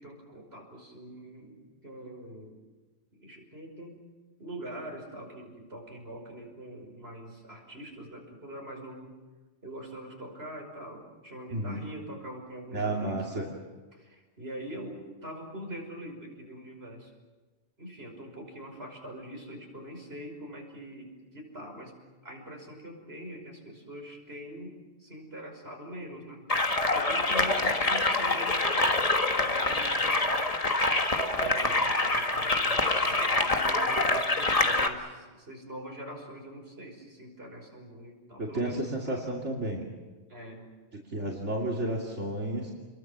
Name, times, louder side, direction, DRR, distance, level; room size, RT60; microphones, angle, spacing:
voice 1, 0.0-2.6 3.1-4.0 4.4-9.2 9.6-13.6 13.9-17.1 17.8-22.0 22.2-26.4 26.9-30.1 31.1-39.2 40.3-40.7, right 1 dB, 60° right, 1 dB, 6.0 m, -43 dB
voice 2, 11.5-11.8 12.7-13.5 38.4-39.9 41.1-42.7, right 1 dB, 80° right, -1 dB, 3.1 m, -32 dB
sound 1, 26.5-34.9, left 2 dB, 30° left, 1.7 m, -26 dB
29.5 x 22.0 x 7.5 m, 1.3 s
omnidirectional pair, 1.2 m